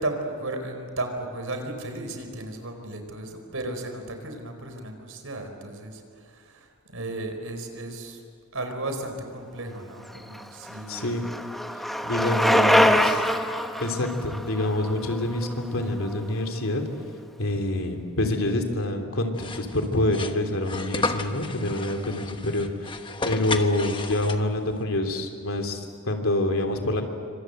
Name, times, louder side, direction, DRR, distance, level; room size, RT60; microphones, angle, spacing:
voice 1, 0.0-8.2 8.5-11.1 12.2-13.4, right 2 dB, 70° right, 5 dB, 4.6 m, -35 dB
Bicycle, 10.1-16.1, equal, ahead, 1.2 m, -24 dB
voice 2, 10.9-11.3 12.0-13.0 13.8-16.8 17.4-22.9 23.2-27.0, left 1 dB, 70° left, 4 dB, 3.4 m, -26 dB
sound 1, 19.3-24.7, left 3 dB, 25° left, 1.2 m, -33 dB
27.5 x 25.5 x 8.0 m, 2.3 s
head